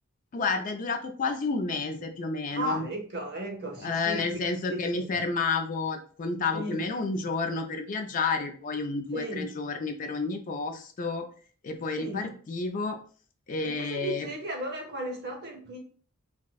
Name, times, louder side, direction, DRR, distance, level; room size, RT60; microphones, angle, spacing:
voice 1, 0.3-2.8 3.8-11.2 11.6-13.0 13.5-14.3, left 4 dB, 35° left, 5 dB, 0.3 m, -30 dB
voice 2, 2.5-4.4 4.7-5.1 6.5-6.8 9.1-9.5 12.0-12.3 13.6-15.8, right 2 dB, 50° right, 3 dB, 0.8 m, -35 dB
4.2 x 2.1 x 2.3 m, 0.43 s
head